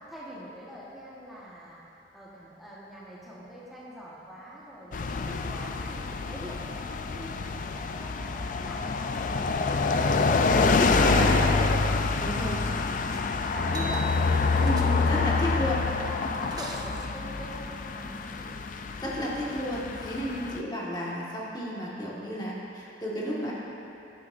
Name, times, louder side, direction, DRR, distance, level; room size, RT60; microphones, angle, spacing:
voice 1, 0.0-1.8 2.1-11.9 12.2-13.1 13.5-15.7 16.0-18.6, equal, ahead, -9 dB, 1.4 m, -44 dB
sound 1, 4.9-20.6, left 4 dB, 50° left, 0.4 m, -27 dB
voice 2, 10.9-11.4 12.2-12.6 14.6-15.8 19.0-23.5, equal, 25° left, -6 dB, 1.6 m, -32 dB
sound 2, 13.1-13.4 13.6-15.3 16.2-17.1 19.2-19.3 19.7-20.2 21.2-21.3, right 4 dB, 20° right, 0.7 m, -44 dB
16.5 x 9.7 x 2.6 m, 2.8 s
head